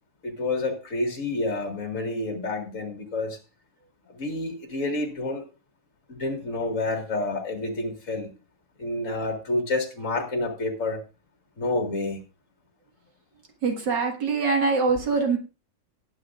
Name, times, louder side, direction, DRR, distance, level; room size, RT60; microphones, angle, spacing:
voice 1, 0.2-3.4 4.1-5.4 6.1-8.3 8.8-11.0 11.6-12.2, left 2 dB, 45° left, 3 dB, 2.3 m, -29 dB
voice 2, 13.6-15.4, right 4 dB, 80° right, 2 dB, 2.4 m, -23 dB
19.5 x 8.4 x 2.5 m, 0.31 s
omnidirectional pair, 1.9 m